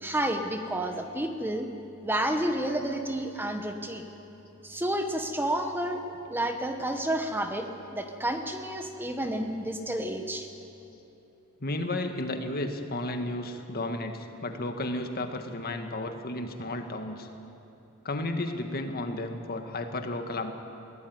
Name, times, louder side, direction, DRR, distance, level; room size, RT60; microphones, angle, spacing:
voice 1, 0.0-1.7 2.0-4.0 4.6-10.5, right 1 dB, 10° right, 5 dB, 1.1 m, -30 dB
voice 2, 11.6-17.3 18.0-20.5, left 2 dB, 45° left, 6 dB, 1.7 m, -33 dB
22.5 x 17.0 x 9.5 m, 2.9 s
head